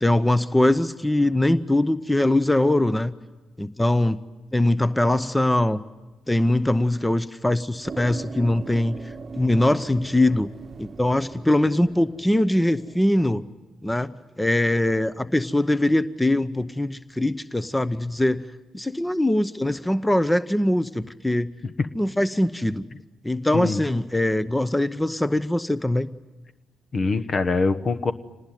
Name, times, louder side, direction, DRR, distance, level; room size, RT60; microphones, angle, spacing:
voice 1, 0.0-3.1 3.6-4.2 4.5-5.8 6.3-9.0 9.3-10.5 10.8-13.4 13.8-18.4 18.7-21.5 21.9-22.8 23.2-26.1, left 1 dB, 10° left, 14 dB, 0.9 m, -22 dB
sound 1, 7.8-13.0, right 5 dB, 45° right, 1.0 m, -41 dB
voice 2, 26.9-28.1, left 4 dB, 50° left, 11 dB, 1.2 m, -23 dB
26.5 x 19.5 x 9.4 m, 1.2 s
hypercardioid pair, 50°, 0 cm